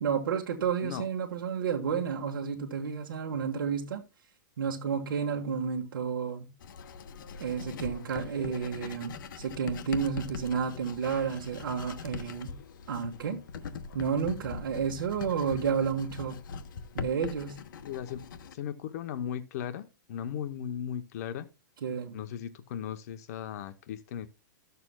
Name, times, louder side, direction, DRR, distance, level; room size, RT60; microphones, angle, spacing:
voice 1, 0.0-4.0 4.6-6.5 7.4-12.6 12.9-13.4 13.9-16.4 16.9-17.6 21.8-22.2, right 6 dB, 85° right, 1.3 m, -31 dB
Writing, 6.6-18.5, left 5 dB, 70° left, 1.0 m, -42 dB
voice 2, 17.8-18.2 18.5-21.5 22.1-24.3, left 9 dB, 50° left, 0.7 m, -37 dB
14.0 x 6.8 x 2.2 m
hypercardioid pair, 155°, 11 cm